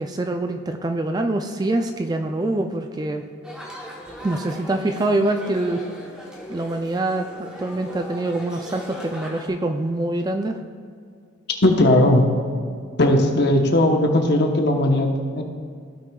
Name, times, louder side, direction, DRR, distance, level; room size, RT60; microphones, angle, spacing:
voice 1, 0.0-3.3 4.2-5.9 6.5-7.3 7.6-10.6, right 2 dB, 20° right, 5 dB, 0.3 m, -24 dB
sound 1, 3.4-9.5, equal, 5° right, 1.1 m, -38 dB
voice 2, 11.6-12.3 13.0-15.4, left 1 dB, 55° left, 3 dB, 1.0 m, -17 dB
15.5 x 6.0 x 2.3 m, 2.2 s
head